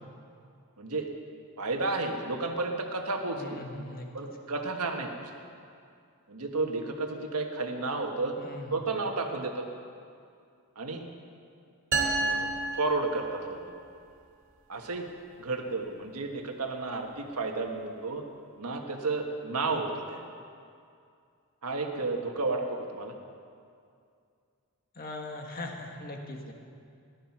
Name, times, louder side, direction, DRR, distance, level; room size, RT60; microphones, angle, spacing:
voice 1, 0.8-1.1 1.6-3.6 4.1-5.3 6.3-8.3 8.7-9.6 10.8-11.0 12.2-12.5 12.7-13.7 14.7-15.1 15.4-18.2 18.6-20.2 21.6-23.1, right 3 dB, 90° right, 3 dB, 1.5 m, -32 dB
voice 2, 3.4-4.1 8.4-8.8 24.9-26.5, left 2 dB, 40° left, 2 dB, 1.5 m, -40 dB
sound 1, 11.9-13.7, right 3 dB, 55° right, 2.4 m, -30 dB
15.0 x 11.5 x 6.0 m, 2.4 s
head